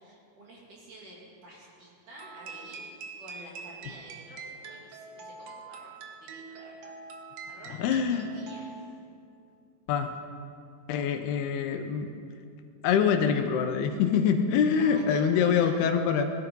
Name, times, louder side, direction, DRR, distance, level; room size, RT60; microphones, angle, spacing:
voice 1, 0.0-2.9 3.2-7.0 7.5-8.7 14.6-15.7, equal, 50° right, -4 dB, 3.8 m, -49 dB
sound 1, 2.2-9.0, right 4 dB, 65° right, 2.2 m, -44 dB
voice 2, 7.8-8.3 9.9-10.1 10.9-12.1 12.8-16.3, left 7 dB, 75° left, 6 dB, 2.6 m, -25 dB
19.5 x 13.0 x 5.4 m, 2.5 s
omnidirectional pair, 5.0 m